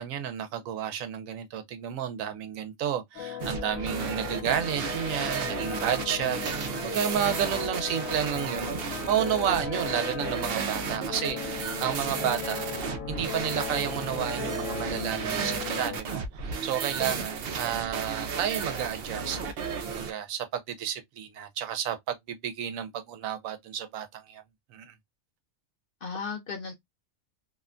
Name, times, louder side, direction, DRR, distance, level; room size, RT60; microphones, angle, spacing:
voice 1, 0.0-12.7 13.1-19.4 19.8-24.4 24.7-24.9, right 9 dB, 90° right, 1.0 m, -31 dB
sound 1, 3.1-16.0, left 9 dB, 80° left, 1.2 m, -37 dB
sound 2, 3.4-20.1, right 6 dB, 60° right, 0.6 m, -33 dB
voice 2, 26.0-26.7, left 5 dB, 55° left, 0.6 m, -36 dB
2.8 x 2.1 x 2.4 m
omnidirectional pair, 1.4 m